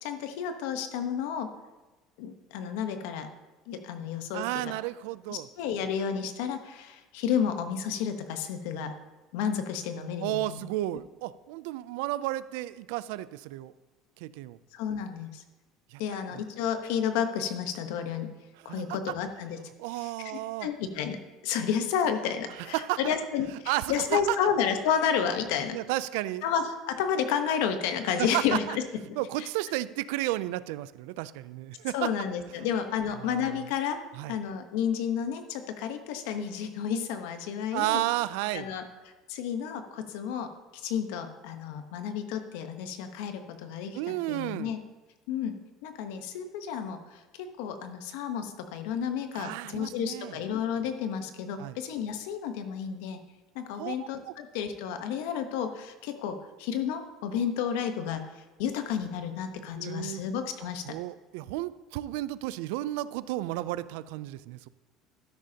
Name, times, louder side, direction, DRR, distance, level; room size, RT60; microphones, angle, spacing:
voice 1, 0.0-1.5 2.2-3.3 3.7-4.7 5.3-8.9 9.3-10.6 14.7-15.4 16.0-18.3 18.6-19.6 20.0-21.2 21.4-25.8 26.4-28.8 29.4-29.5 31.9-34.0 34.3-38.0 38.5-38.8 39.3-44.8 45.3-45.5 45.8-53.2 53.5-60.9, left 8 dB, 80° left, 7 dB, 1.0 m, -31 dB
voice 2, 4.3-5.5 10.2-13.7 14.2-14.6 15.9-16.0 16.3-16.4 18.6-19.1 19.8-20.7 22.6-23.2 23.7-24.4 25.7-26.5 28.2-28.8 29.2-32.1 33.2-33.7 34.2-34.4 37.7-38.7 43.9-44.7 49.3-50.4 51.6-51.8 53.8-54.3 59.8-60.2 60.9-64.7, right 16 dB, 85° right, 17 dB, 0.3 m, -32 dB
12.5 x 10.0 x 2.8 m, 1.2 s
cardioid pair, 180°, 0 cm